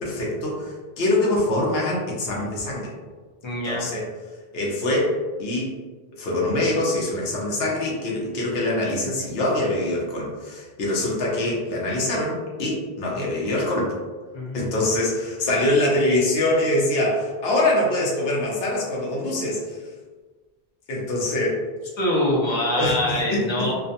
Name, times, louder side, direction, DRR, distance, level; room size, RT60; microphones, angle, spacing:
voice 1, 0.0-2.9 3.6-4.1 4.5-5.7 6.2-13.9 14.5-19.8 20.9-21.6 22.8-22.9 23.3-23.4, left 1 dB, 70° left, -4 dB, 0.9 m, -24 dB
voice 2, 3.4-3.9 14.3-14.6 22.0-23.7, left 1 dB, 35° left, -4 dB, 0.5 m, -24 dB
2.5 x 2.2 x 2.6 m, 1.4 s
omnidirectional pair, 1.1 m